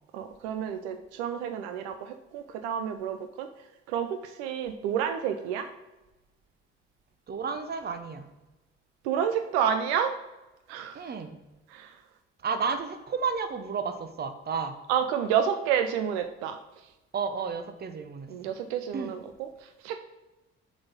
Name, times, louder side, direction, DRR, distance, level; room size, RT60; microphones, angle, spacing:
voice 1, 0.1-3.5 3.9-5.7 9.0-10.1 10.7-11.0 11.7-11.9 14.9-16.6 18.3-20.0, right 8 dB, 70° right, 7 dB, 0.5 m, -29 dB
voice 2, 7.3-8.3 10.9-11.4 12.4-14.8 17.1-18.3 18.9-19.1, right 5 dB, 30° right, 10 dB, 0.7 m, -32 dB
7.6 x 4.1 x 4.0 m, 1.1 s
figure-of-eight pair, 50°, 34 cm